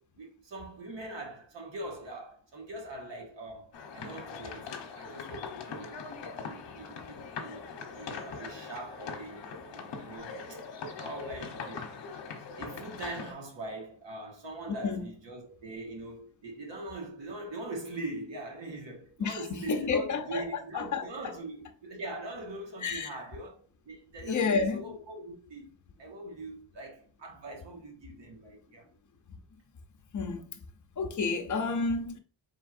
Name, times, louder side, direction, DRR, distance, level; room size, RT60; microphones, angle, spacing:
voice 1, 0.0-6.1 6.4-7.7 7.9-10.6 10.9-11.9 12.6-25.7 26.0-28.9, right 2 dB, 65° right, 1.7 m, -42 dB
sound 1, 3.7-13.3, left 5 dB, 65° left, 1.0 m, -41 dB
voice 2, 19.7-20.5 20.7-21.1 22.8-23.1 24.2-25.0 29.3-29.4 30.1-30.6 31.0-32.2, left 4 dB, 40° left, 0.7 m, -30 dB
4.4 x 3.6 x 2.5 m
cardioid pair, 115°, 47 cm